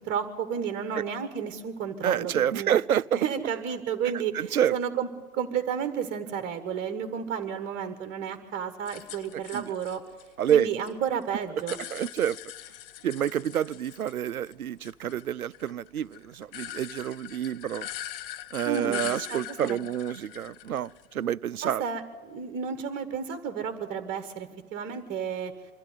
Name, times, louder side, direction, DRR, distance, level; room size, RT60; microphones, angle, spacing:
voice 1, 0.0-2.7 3.1-5.1 5.3-10.0 10.5-11.8 18.6-19.8 21.6-25.5, right 7 dB, 25° right, 1.4 m, -32 dB
voice 2, 2.0-3.2 4.3-4.7 9.5-9.6 10.4-10.7 11.9-12.4 13.0-17.9 18.5-21.8, right 10 dB, 80° right, 0.5 m, -28 dB
sound 1, 8.9-10.9 11.2-14.5 14.8-21.2, left 13 dB, 40° left, 0.7 m, -41 dB
24.0 x 13.5 x 8.1 m
figure-of-eight pair, 100°, 43 cm